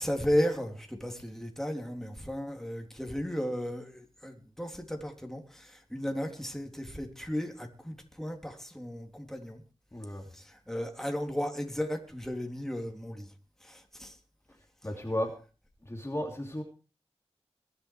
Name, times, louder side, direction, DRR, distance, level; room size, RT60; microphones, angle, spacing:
voice 1, 0.0-9.6 10.3-13.3 13.6-14.2, equal, 5° left, 3.5 m, -34 dB
voice 2, 9.9-10.3 14.8-15.4 15.8-16.6, left 1 dB, 20° left, 3.0 m, -34 dB
22.5 x 8.1 x 4.8 m
cardioid pair, 45°, 11 cm